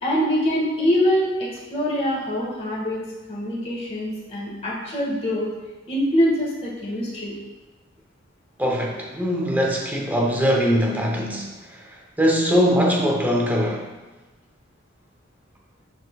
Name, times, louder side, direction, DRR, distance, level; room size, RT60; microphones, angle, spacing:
voice 1, 0.0-3.0 3.3-5.5 5.9-7.4, equal, 30° left, -5 dB, 1.7 m, -24 dB
voice 2, 8.6-13.9, equal, 10° right, -1 dB, 0.9 m, -22 dB
11.0 x 4.3 x 2.4 m, 1.2 s
head